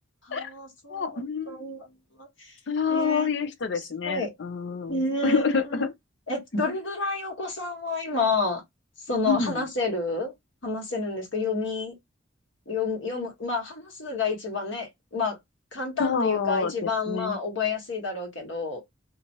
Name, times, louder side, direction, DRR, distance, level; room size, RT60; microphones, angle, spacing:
voice 1, 0.2-1.9 2.2-2.5 2.9-3.3 3.7-4.3 4.9-5.8 6.3-8.6 9.1-10.3 10.6-11.9 12.7-15.4 15.7-18.8, left 3 dB, 90° left, 1.4 m, -30 dB
voice 2, 0.9-1.6 2.7-5.0 5.2-5.9 9.3-9.6 16.0-16.7 17.1-17.4, left 5 dB, 65° left, 0.5 m, -27 dB
2.8 x 2.4 x 2.8 m
head